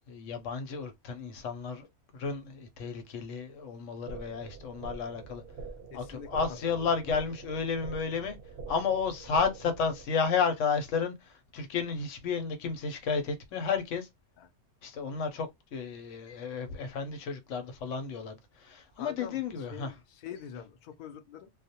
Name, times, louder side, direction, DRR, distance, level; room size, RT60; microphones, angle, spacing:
voice 1, 0.1-1.9 2.1-5.4 5.9-8.3 8.7-14.1 14.8-19.9, left 5 dB, 85° left, 1.0 m, -32 dB
sound 1, 4.1-10.1, right 4 dB, 60° right, 0.7 m, -45 dB
voice 2, 5.9-6.3 6.6-6.9 14.4-14.5 19.0-21.5, left 8 dB, 55° left, 0.5 m, -45 dB
2.3 x 2.1 x 2.7 m
omnidirectional pair, 1.3 m